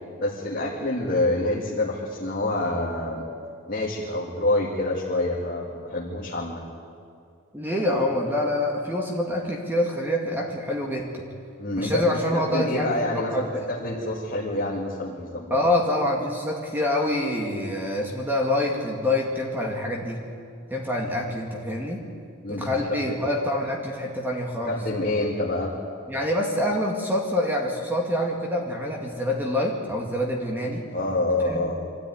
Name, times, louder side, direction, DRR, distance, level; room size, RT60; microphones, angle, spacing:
voice 1, 0.2-3.2 3.7-6.6 11.6-12.0 12.3-15.6 22.4-22.7 23.0-23.2 24.7-25.7 30.9-31.8, left 2 dB, 40° left, -4 dB, 2.4 m, -27 dB
voice 2, 7.5-11.2 11.7-13.5 15.5-20.2 20.7-22.1 22.5-24.8 26.1-30.9 31.5-31.6, left 1 dB, 10° right, -1 dB, 2.1 m, -26 dB
24.5 x 14.0 x 9.5 m, 2.4 s
head